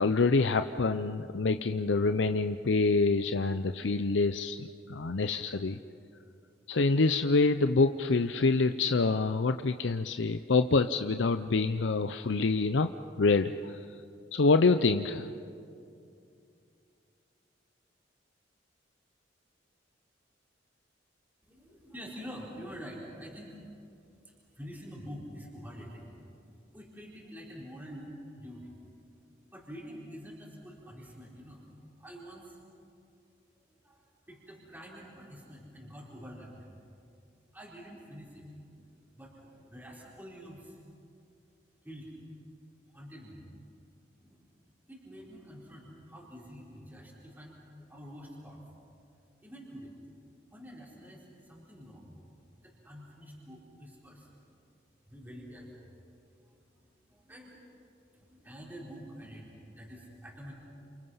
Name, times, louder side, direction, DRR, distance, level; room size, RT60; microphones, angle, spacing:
voice 1, 0.0-5.8 6.7-12.9 13.2-13.8 14.3-15.3, left 3 dB, 80° left, 9 dB, 0.6 m, -26 dB
voice 2, 21.4-23.6 24.2-26.1 26.6-28.9 29.2-31.6 31.9-32.6 33.5-36.7 37.5-38.9 39.1-40.8 41.8-42.1 42.9-43.4 44.2-44.4 44.9-47.6 47.9-48.6 49.4-50.0 50.5-52.1 52.5-54.3 55.1-57.7 58.1-60.5, equal, 10° right, -5 dB, 4.4 m, -47 dB
30.0 x 28.0 x 5.7 m, 2.6 s
head